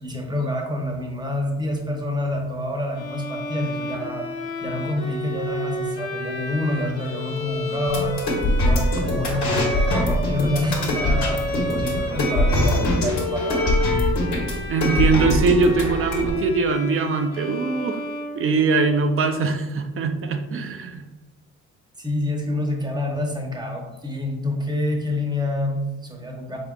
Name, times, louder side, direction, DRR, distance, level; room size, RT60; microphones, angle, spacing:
voice 1, 0.0-4.3 4.6-8.2 8.5-13.6 22.0-26.6, left 1 dB, 15° right, 1 dB, 0.8 m, -27 dB
Bowed string instrument, 2.9-19.0, left 1 dB, 55° left, 1.1 m, -31 dB
sound 1, 7.9-16.3, left 1 dB, 70° left, 1.1 m, -22 dB
voice 2, 14.7-18.0 18.3-21.0, right 4 dB, 45° right, 7 dB, 0.5 m, -22 dB
4.4 x 3.6 x 2.3 m, 1.1 s
cardioid pair, 90°, 30 cm